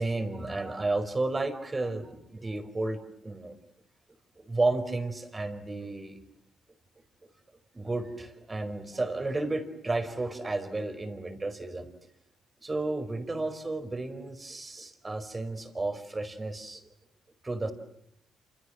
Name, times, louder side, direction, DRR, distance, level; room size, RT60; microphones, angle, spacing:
voice 1, 0.0-3.6 4.4-6.2 7.7-11.9 12.6-16.9 17.4-17.7, right 2 dB, 20° right, 9 dB, 4.9 m, -32 dB
28.0 x 27.5 x 7.6 m, 0.75 s
cardioid pair, 90°, 0 cm